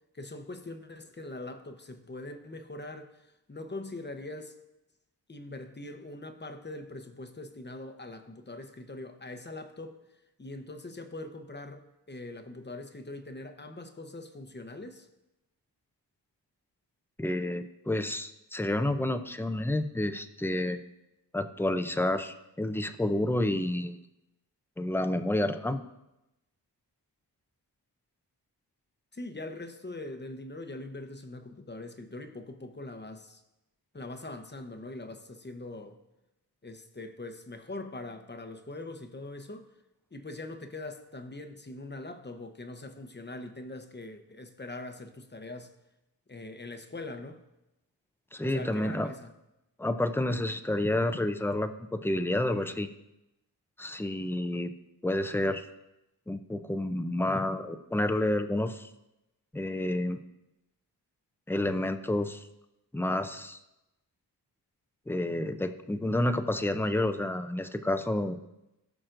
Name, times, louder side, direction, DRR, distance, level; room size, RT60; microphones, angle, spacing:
voice 1, 0.1-4.6 5.3-10.0 10.4-15.1 29.1-33.4 33.9-36.0 36.6-39.7 40.1-45.7 46.3-47.4 48.4-49.3, left 2 dB, 25° left, 7 dB, 0.9 m, -42 dB
voice 2, 17.2-20.8 21.3-24.0 24.8-25.8 48.3-49.1 49.8-52.9 53.8-54.7 55.0-55.6 56.3-58.9 59.5-60.2 61.5-62.4 62.9-63.6 65.1-68.4, left 1 dB, 5° left, 9 dB, 0.6 m, -29 dB
17.0 x 6.1 x 2.6 m, 0.93 s
cardioid pair, 60°, 42 cm